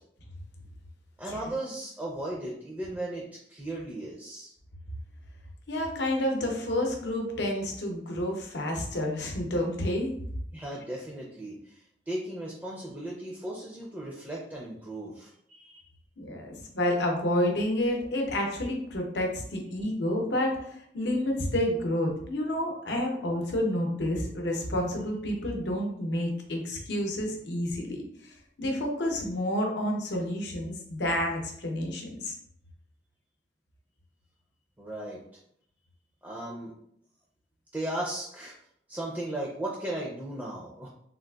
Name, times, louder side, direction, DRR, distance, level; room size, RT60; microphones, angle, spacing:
voice 1, 1.2-4.5 10.5-15.8 19.8-19.9 34.8-35.2 36.2-36.7 37.7-38.5 38.9-40.9, right 1 dB, 10° right, -3 dB, 0.4 m, -36 dB
voice 2, 5.7-10.1 16.2-20.6 20.9-28.0 28.6-32.3, left 1 dB, 80° left, 1 dB, 0.7 m, -29 dB
3.7 x 2.4 x 2.3 m, 0.69 s
head